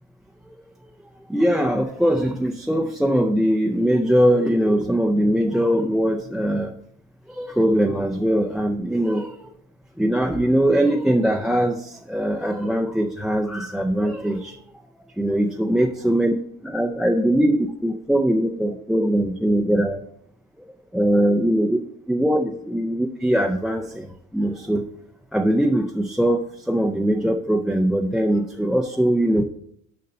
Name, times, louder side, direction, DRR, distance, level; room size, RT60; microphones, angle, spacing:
voice 1, 1.3-6.7 7.3-9.4 10.0-14.5 15.2-16.3 16.6-20.0 20.9-21.8 22.1-23.8 24.3-24.9 25.3-26.4 26.7-29.4, right 1 dB, ahead, 5 dB, 0.3 m, -21 dB
6.8 x 5.1 x 5.3 m, 0.69 s
cardioid pair, 130°, 29 cm